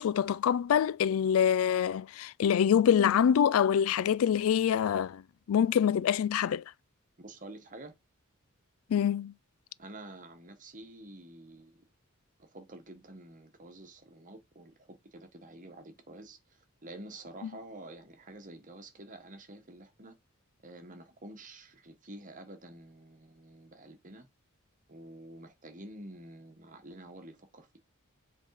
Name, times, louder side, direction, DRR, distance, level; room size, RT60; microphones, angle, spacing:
voice 1, 0.0-5.2 5.5-6.6 8.9-9.3, left 8 dB, 70° left, 0.3 m, -25 dB
voice 2, 7.2-7.9 9.8-11.8 12.4-20.2 20.6-24.3 24.9-27.8, right 1 dB, 40° right, 1.4 m, -49 dB
7.5 x 4.0 x 4.8 m
head